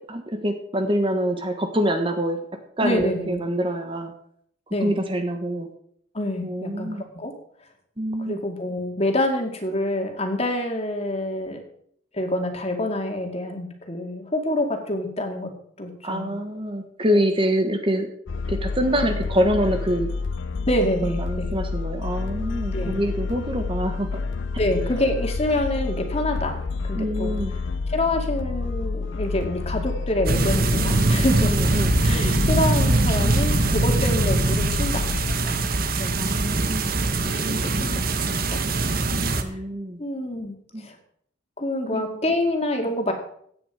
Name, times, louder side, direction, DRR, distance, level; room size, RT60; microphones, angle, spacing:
voice 1, 0.1-2.4 2.8-4.1 4.8-5.7 6.4-7.0 8.0-8.4 16.0-18.1 18.5-20.1 21.2-24.1 27.0-27.5 31.4-32.0 36.1-37.0 38.6-38.9 39.4-40.0 40.7-40.8 41.9-42.2, equal, 25° right, 6 dB, 1.3 m, -25 dB
voice 2, 2.8-3.4 4.7-5.0 6.1-7.3 8.2-11.6 12.1-15.5 15.8-16.3 17.1-17.2 20.7-21.5 22.7-23.0 23.3-23.4 24.6-26.6 26.8-27.3 27.9-35.6 36.0-36.2 37.2-38.6 39.4-39.6 40.0-41.0 41.6-43.1, left 1 dB, 30° left, 4 dB, 2.2 m, -27 dB
sound 1, 18.3-35.4, left 4 dB, 65° left, 0.5 m, -29 dB
sound 2, 30.3-39.4, right 2 dB, 45° right, 1.2 m, -22 dB
16.0 x 9.6 x 4.9 m, 0.66 s
head